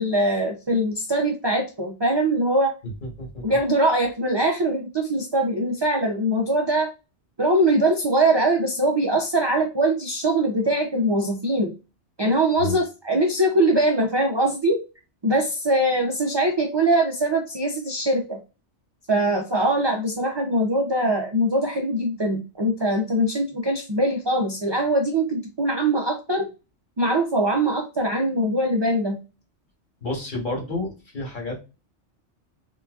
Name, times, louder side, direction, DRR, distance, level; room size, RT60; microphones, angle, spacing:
voice 1, 0.0-2.7 3.4-6.9 7.4-11.7 12.2-14.8 15.2-18.4 19.1-26.5 27.0-29.2, right 1 dB, 45° right, 1 dB, 0.3 m, -22 dB
voice 2, 3.0-3.5 12.6-12.8 30.0-31.6, left 2 dB, 45° left, -1 dB, 1.3 m, -30 dB
3.7 x 2.5 x 2.3 m, 0.29 s
omnidirectional pair, 1.2 m